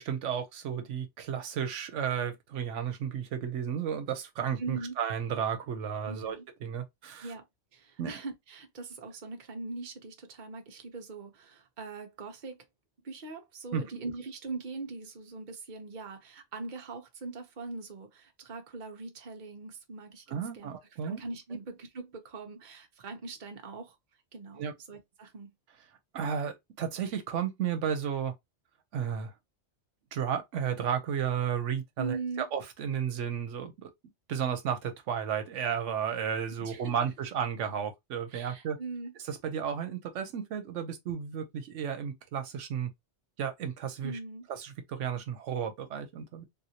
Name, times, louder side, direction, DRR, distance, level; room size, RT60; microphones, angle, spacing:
voice 1, 0.0-7.3 8.0-8.1 13.7-13.8 20.3-21.2 24.6-24.7 26.1-28.3 28.9-29.3 30.1-33.9 34.3-38.8 39.3-42.9 43.4-44.2 44.5-46.4, right 8 dB, 85° right, 1.0 m, -33 dB
voice 2, 4.6-4.9 6.1-6.4 7.2-7.4 7.7-12.6 13.0-20.8 21.0-24.0 24.3-25.5 32.0-32.5 36.6-37.0 38.3-39.1 44.0-44.5, right 3 dB, 45° right, 0.9 m, -41 dB
3.6 x 2.6 x 2.8 m
omnidirectional pair, 1.2 m